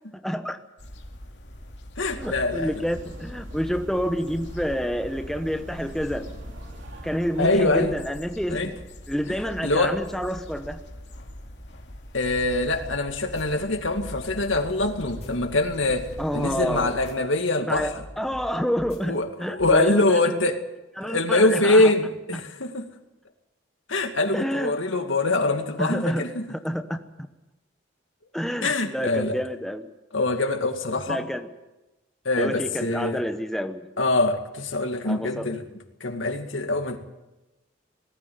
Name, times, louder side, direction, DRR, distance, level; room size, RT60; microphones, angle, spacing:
voice 1, 0.1-0.6 2.1-6.3 7.0-8.8 9.1-10.8 16.2-16.9 17.6-20.4 21.0-21.9 24.3-24.8 25.8-27.0 28.3-29.9 31.1-31.5 32.4-33.9 35.0-35.5, equal, ahead, 7 dB, 1.1 m, -28 dB
sound 1, 0.8-16.9, equal, 65° left, 2.7 m, -42 dB
voice 2, 2.0-2.7 7.4-7.9 8.5-8.7 9.6-10.0 12.1-17.9 19.0-20.6 21.0-22.9 23.9-26.5 28.6-29.4 30.1-31.2 32.3-33.2 34.0-35.6 36.0-37.0, left 2 dB, 90° left, 5 dB, 2.3 m, -24 dB
sound 2, 2.2-7.6, right 1 dB, 80° right, 3.2 m, -43 dB
sound 3, 12.4-12.9 13.2-13.4 14.0-14.8 15.1-15.3 15.9-16.6 16.9-17.1 17.7-18.5 18.8-19.0 19.6-19.7, equal, 35° left, 5.3 m, -42 dB
20.5 x 14.0 x 9.5 m, 1.0 s
head